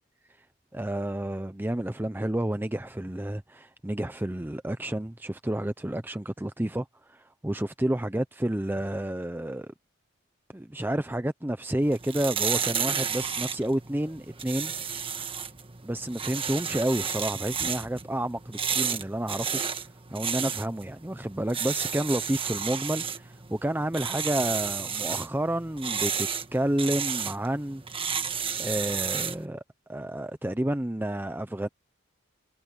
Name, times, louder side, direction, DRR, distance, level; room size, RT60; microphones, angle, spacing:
voice 1, 0.7-9.7 10.5-14.7 15.8-19.6 20.1-27.8 28.6-29.6 29.9-31.7, right 1 dB, 10° right, 0.6 m, -30 dB
sound 1, 11.8-29.5, right 7 dB, 25° right, 1.4 m, -32 dB
head